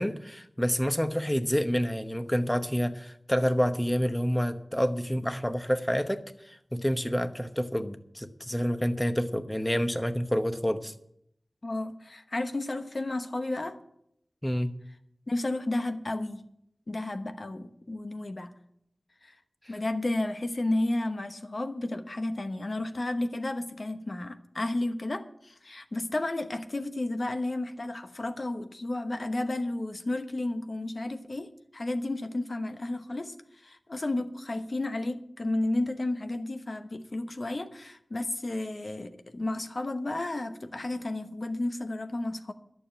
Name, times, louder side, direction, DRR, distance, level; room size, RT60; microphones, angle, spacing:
voice 1, 0.0-6.2 6.4-10.9 14.4-14.7, equal, 10° left, 10 dB, 0.9 m, -28 dB
voice 2, 11.6-13.8 15.3-16.4 16.9-18.5 19.2-19.4 19.7-33.3 33.6-42.5, left 2 dB, 55° left, 9 dB, 1.0 m, -32 dB
11.5 x 7.2 x 8.8 m, 0.73 s
wide cardioid pair, 70°, 0 cm